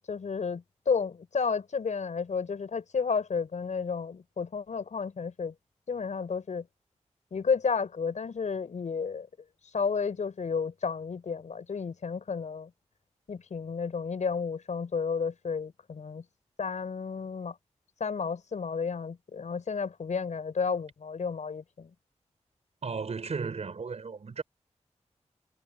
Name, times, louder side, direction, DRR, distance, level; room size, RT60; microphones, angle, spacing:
voice 1, 0.1-5.5 5.9-6.6 7.3-9.3 9.7-12.7 13.3-16.2 16.6-17.5 18.0-21.9, left 5 dB, 80° left, 5.8 m, -32 dB
voice 2, 22.8-24.4, right 5 dB, 65° right, 5.1 m, -35 dB
wide cardioid pair, 135°, 12 cm